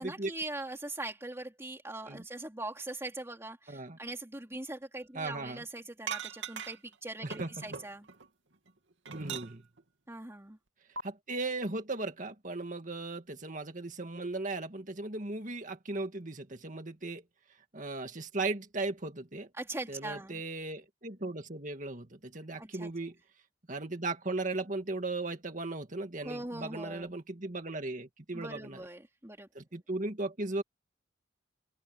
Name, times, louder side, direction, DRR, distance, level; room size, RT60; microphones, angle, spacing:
voice 1, 0.0-8.1 10.1-10.6 19.6-20.4 22.6-22.9 26.2-27.1 28.3-29.5, right 2 dB, 15° right, 3.1 m, -41 dB
voice 2, 3.7-4.0 5.1-5.6 7.2-7.5 9.1-9.6 11.0-17.2 17.7-19.5 19.9-23.1 23.7-28.8 29.5-30.6, right 2 dB, 45° right, 2.0 m, -37 dB
sound 1, 6.1-6.9 7.3-8.3 8.7-9.8 11.0-11.1, right 6 dB, 75° right, 2.9 m, -40 dB
open air
head